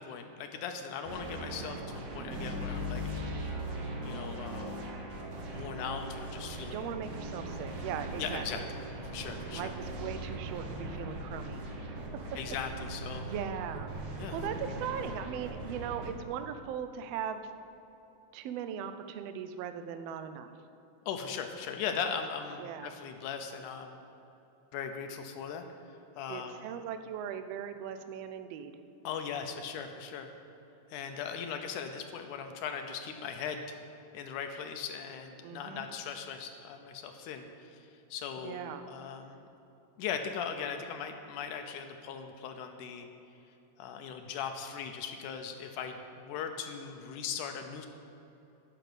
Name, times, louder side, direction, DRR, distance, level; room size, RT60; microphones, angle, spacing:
voice 1, 0.0-3.0 4.0-4.9 5.5-7.0 8.2-8.7 9.0-9.7 12.4-13.3 14.2-14.4 21.1-24.0 24.7-25.7 26.2-26.6 29.0-30.3 30.9-33.8 34.1-39.4 40.0-43.1 43.8-47.9, left 7 dB, 80° left, 5 dB, 2.2 m, -39 dB
sound 1, 1.0-16.1, right 1 dB, 55° right, 1.6 m, -39 dB
voice 2, 6.5-8.6 9.5-11.6 13.2-13.9 14.3-17.4 18.3-20.5 22.6-22.9 26.3-28.7 35.4-35.8 38.4-38.8, right 8 dB, 85° right, 9 dB, 1.4 m, -39 dB
10.5 x 5.8 x 7.9 m, 2.9 s
omnidirectional pair, 3.6 m